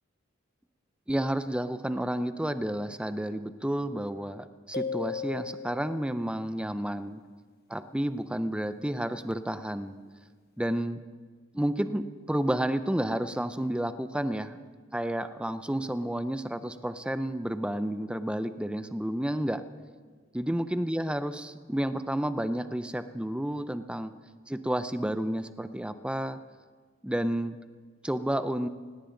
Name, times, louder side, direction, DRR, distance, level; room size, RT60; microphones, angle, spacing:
voice 1, 1.1-7.2 7.7-10.0 10.6-11.0 11.5-14.6 14.9-19.6 20.3-24.1 24.5-26.4 27.0-27.6 28.0-28.7, right 1 dB, 5° right, 11 dB, 0.5 m, -31 dB
sound 1, 4.7-6.2, left 5 dB, 55° left, 1.1 m, -35 dB
18.0 x 17.5 x 3.9 m, 1.5 s
head